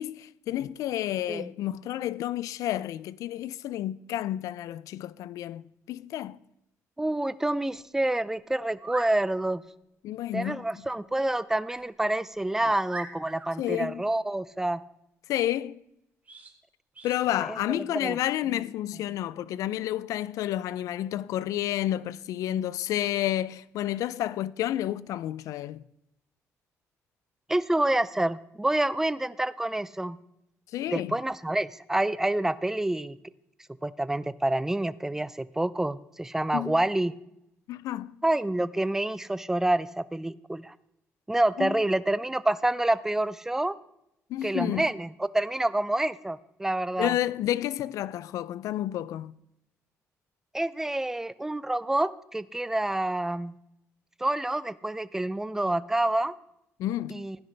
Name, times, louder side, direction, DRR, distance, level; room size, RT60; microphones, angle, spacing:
voice 1, 0.0-6.4 10.0-10.6 13.6-14.1 15.3-15.8 17.0-25.8 30.7-31.2 36.5-36.7 37.7-38.2 41.6-41.8 44.3-44.9 47.0-49.4 56.8-57.3, left 13 dB, 80° left, 0.4 m, -30 dB
voice 2, 7.0-9.6 10.3-14.8 17.5-18.2 27.5-30.2 30.9-33.2 33.8-37.1 38.2-40.7 41.3-43.8 44.4-45.1 45.3-47.1 50.5-53.6 54.2-56.4 57.1-57.4, right 1 dB, 10° right, 0.4 m, -28 dB
sound 1, 8.7-9.1 11.6-11.9 12.4-12.5 12.9-13.5 16.2-16.5 16.9-17.2, right 3 dB, 25° right, 1.8 m, -42 dB
15.5 x 10.5 x 3.3 m
cardioid pair, 110°, 6 cm